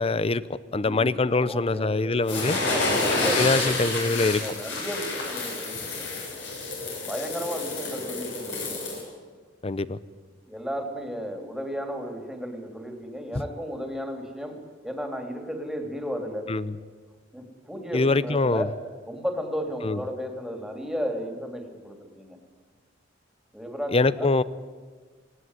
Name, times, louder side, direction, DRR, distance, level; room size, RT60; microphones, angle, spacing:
voice 1, 0.0-2.6 3.4-4.4 9.6-10.0 16.5-16.8 17.9-18.7 19.8-20.0 23.9-24.4, left 3 dB, 30° left, 17 dB, 0.6 m, -24 dB
voice 2, 0.8-6.1 7.0-8.8 10.5-16.4 17.3-18.7 19.1-22.4 23.5-24.4, equal, ahead, 4 dB, 2.9 m, -34 dB
sound 1, 2.3-9.0, left 2 dB, 70° left, 7.8 m, -29 dB
19.0 x 17.5 x 9.7 m, 1.5 s
head